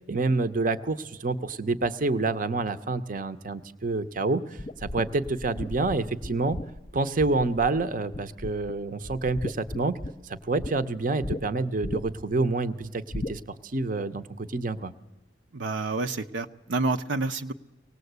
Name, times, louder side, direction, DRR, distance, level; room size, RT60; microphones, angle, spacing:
voice 1, 0.1-6.6 6.9-10.0 10.2-13.4 13.7-14.9, right 3 dB, 45° right, 10 dB, 0.8 m, -28 dB
sound 1, 4.6-7.8 8.1-8.7 9.0-10.7 11.2-11.4 11.8-12.3 13.1-13.4, left 1 dB, 30° left, 0.7 m, -35 dB
voice 2, 15.5-17.5, right 3 dB, 80° right, 6 dB, 0.8 m, -29 dB
24.5 x 18.5 x 8.1 m, 1.1 s
head